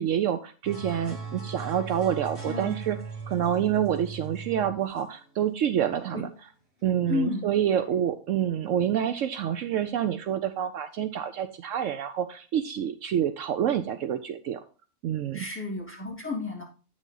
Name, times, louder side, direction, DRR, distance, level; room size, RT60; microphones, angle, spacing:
voice 1, 0.0-3.0 3.3-6.3 6.8-14.6 15.0-15.4, right 9 dB, 70° right, 10 dB, 0.9 m, -27 dB
sound 1, 0.6-6.0, right 4 dB, 45° right, 3.2 m, -38 dB
voice 2, 2.4-2.7 6.1-6.2 7.1-7.5 15.3-16.6, left 3 dB, 10° left, -3 dB, 2.8 m, -31 dB
8.7 x 6.4 x 3.9 m, 0.35 s
omnidirectional pair, 1.4 m